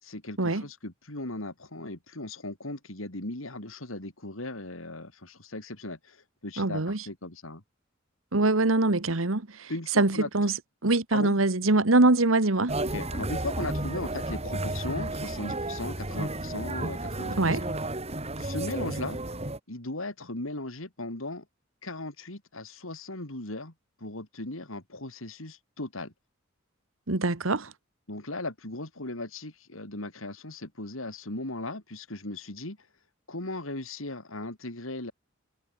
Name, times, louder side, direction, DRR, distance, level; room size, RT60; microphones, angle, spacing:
voice 1, 0.0-7.6 9.7-10.3 11.1-11.4 12.9-17.7 18.4-19.2 19.7-21.4 21.8-23.7 24.0-26.1 28.1-32.8 33.3-35.1, left 2 dB, 80° left, 3.8 m, -37 dB
voice 2, 6.6-7.0 8.3-9.7 10.0-10.5 10.8-12.8 17.4-17.6 27.1-27.7, right 2 dB, 80° right, 1.6 m, -23 dB
sound 1, 12.7-19.6, right 2 dB, 30° right, 4.0 m, -32 dB
head